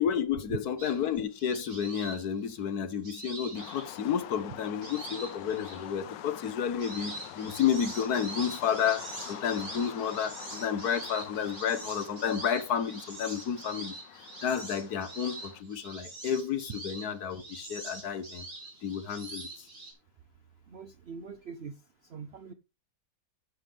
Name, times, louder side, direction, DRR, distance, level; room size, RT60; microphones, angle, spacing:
voice 1, 0.0-13.9 14.4-18.5 18.8-19.7, left 8 dB, 65° left, 1.4 m, -31 dB
sound 1, 0.8-4.3 4.8-5.9 6.4-19.9, right 2 dB, 40° right, 3.0 m, -44 dB
sound 2, 3.5-15.6, left 11 dB, 90° left, 1.4 m, -46 dB
voice 2, 20.7-21.8 22.1-22.5, right 5 dB, 60° right, 0.6 m, -43 dB
10.5 x 7.5 x 3.4 m
omnidirectional pair, 1.8 m